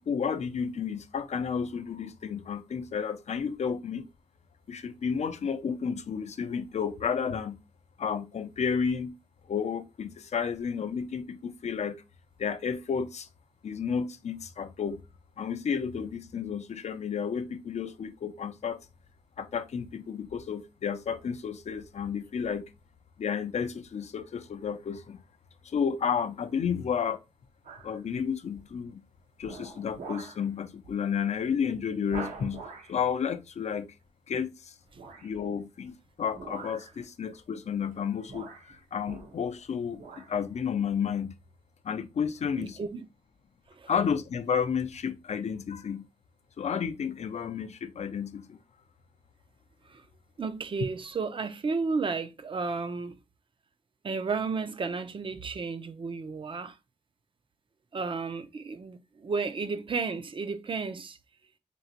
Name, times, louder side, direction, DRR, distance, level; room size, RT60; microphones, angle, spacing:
voice 1, 0.1-4.1 4.7-7.6 8.0-9.1 9.5-12.0 12.4-13.3 13.6-15.0 15.4-18.8 19.4-22.7 23.2-25.2 25.6-27.2 27.8-29.0 29.4-33.9 34.3-34.7 35.2-41.3 41.8-42.8 43.9-46.1 46.6-48.6, left 7 dB, 60° left, 0.5 m, -31 dB
sound 1, 27.6-28.0 28.5-28.9 29.4-30.4 30.8-31.0 31.4-31.5 32.1-33.0 34.9-35.4 36.3-37.0 37.9-38.0 38.3-39.6 39.9-40.3 40.8-40.9, right 4 dB, 80° right, 1.0 m, -44 dB
voice 2, 42.6-43.1 43.7-43.9 49.9-50.0 50.4-53.1 54.0-56.8 57.9-61.2, right 4 dB, 40° right, 0.5 m, -33 dB
4.5 x 2.9 x 2.7 m
wide cardioid pair, 115°, 13 cm